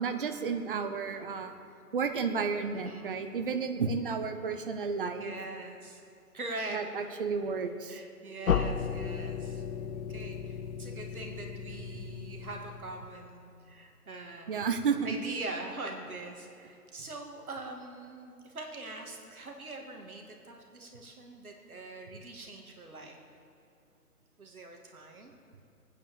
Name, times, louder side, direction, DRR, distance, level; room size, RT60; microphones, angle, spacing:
voice 1, 0.0-1.5 1.9-5.3 6.7-8.0 14.5-15.2, right 5 dB, 35° right, 7 dB, 0.9 m, -32 dB
voice 2, 2.7-3.2 5.2-6.0 6.3-6.8 7.9-14.6 15.0-23.2 24.4-25.3, right 2 dB, 65° right, 2 dB, 2.6 m, -43 dB
sound 1, 8.5-13.3, left 7 dB, 60° left, 0.7 m, -34 dB
22.0 x 9.3 x 7.1 m, 2.5 s
figure-of-eight pair, 150°, 47 cm